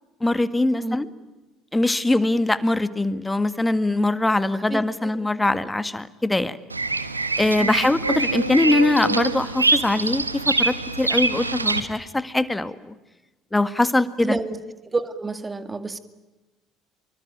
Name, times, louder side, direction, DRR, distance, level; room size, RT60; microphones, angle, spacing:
voice 1, 0.2-1.1 1.7-6.6 7.4-12.9 13.5-14.4, left 2 dB, 10° left, 13 dB, 1.8 m, -22 dB
voice 2, 0.8-1.1 4.7-5.3 7.6-7.9 14.2-14.6 14.8-16.0, right 3 dB, 20° right, 12 dB, 2.2 m, -29 dB
Bird vocalization bird call bird song, 6.7-11.8, right 3 dB, 85° right, 1.3 m, -24 dB
26.0 x 24.0 x 9.0 m, 1.1 s
figure-of-eight pair, 55°, 0 cm